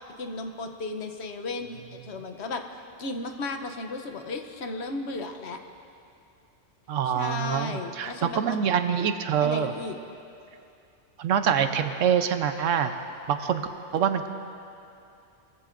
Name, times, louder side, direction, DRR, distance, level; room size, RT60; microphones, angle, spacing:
voice 1, 0.2-2.6 3.0-5.6 7.1-8.6 9.4-10.0, left 3 dB, 65° left, 5 dB, 1.0 m, -34 dB
voice 2, 6.9-9.7 11.2-12.9 13.3-14.3, right 8 dB, 80° right, 8 dB, 1.1 m, -25 dB
21.5 x 15.0 x 2.6 m, 2.6 s
omnidirectional pair, 1.3 m